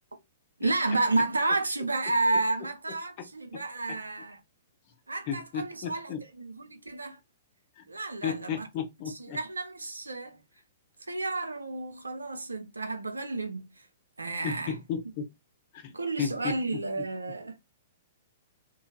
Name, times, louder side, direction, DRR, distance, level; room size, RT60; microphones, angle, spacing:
voice 1, 0.6-4.4 5.1-7.2 7.9-8.7 9.2-10.4 11.1-13.7 14.2-14.7 15.9-17.6, right 2 dB, 90° right, 0.6 m, -31 dB
voice 2, 3.2-3.6 3.9-4.0 5.3-6.2 7.8-7.9 8.2-9.4 14.4-15.3 15.7-15.9 16.2-17.0, left 7 dB, 45° left, 0.9 m, -34 dB
3.1 x 2.7 x 2.2 m
figure-of-eight pair, 115°, 0 cm